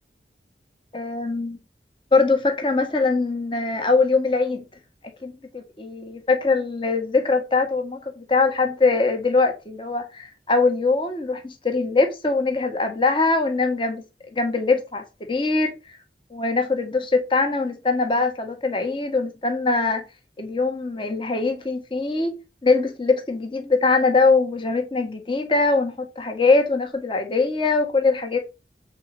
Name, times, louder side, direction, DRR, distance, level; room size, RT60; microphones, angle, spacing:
voice 1, 0.9-1.6 2.1-4.6 5.2-14.0 14.3-15.7 16.3-20.0 20.4-22.4 22.6-28.4, left 3 dB, 30° left, 1.5 m, -22 dB
7.8 x 4.1 x 5.5 m
head